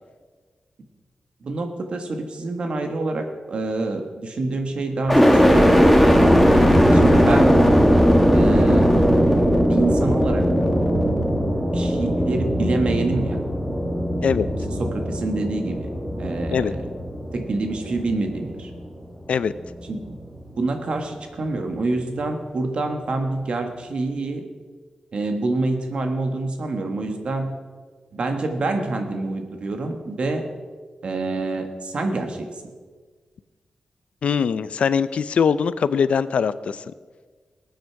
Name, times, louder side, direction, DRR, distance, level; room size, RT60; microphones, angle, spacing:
voice 1, 1.4-5.9 6.9-7.6 8.3-8.9 9.7-10.5 11.7-13.4 14.8-15.9 16.2-16.8 17.3-18.7 19.9-20.2 20.6-24.5 25.1-27.6 28.1-30.5 31.0-32.5, right 2 dB, 60° right, 5 dB, 1.6 m, -26 dB
sound 1, 5.1-19.1 19.6-20.3, equal, ahead, 1.7 m, -18 dB
voice 2, 34.2-36.8, left 6 dB, 75° left, 15 dB, 0.5 m, -21 dB
19.5 x 9.1 x 4.7 m, 1.5 s
wide cardioid pair, 150°, 2 cm